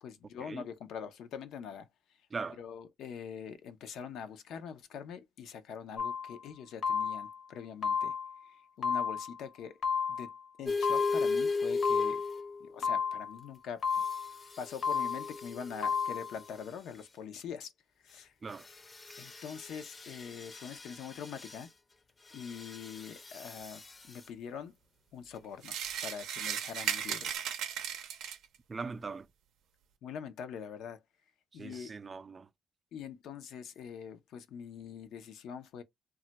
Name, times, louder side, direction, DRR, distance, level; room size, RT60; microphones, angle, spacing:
voice 1, 0.0-1.9 2.6-8.1 8.5-9.8 10.2-10.3 10.6-12.2 12.6-13.9 14.6-17.7 18.0-18.3 19.2-21.7 22.3-24.7 25.1-27.4 30.0-31.0 31.5-31.9 32.9-35.8, left 7 dB, 80° left, 0.5 m, -44 dB
sound 1, 6.0-6.4 6.8-7.4 7.8-8.4 8.8-9.4 9.8-10.4 10.8-11.4 11.8-12.4 12.8-13.4 13.8-14.4 14.8-15.4 15.8-16.4, left 6 dB, 60° left, 0.8 m, -32 dB
sound 2, 10.7-12.8 13.9-16.4 18.5-21.7 22.3-24.2 26.6-27.3, left 4 dB, 30° left, 0.5 m, -37 dB
sound 3, 25.6-28.6, right 9 dB, 90° right, 0.5 m, -36 dB
voice 2, 28.7-29.3 31.5-32.5, right 4 dB, 35° right, 0.3 m, -40 dB
2.3 x 2.1 x 3.9 m
cardioid pair, 90°, 0 cm